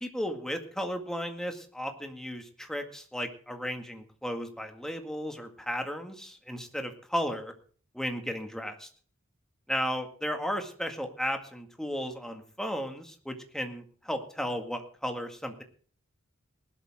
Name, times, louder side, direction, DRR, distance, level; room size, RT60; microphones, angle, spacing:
voice 1, 0.0-7.5 7.9-8.9 9.7-15.6, equal, ahead, 5 dB, 2.0 m, -34 dB
19.0 x 12.0 x 3.7 m, 0.43 s
head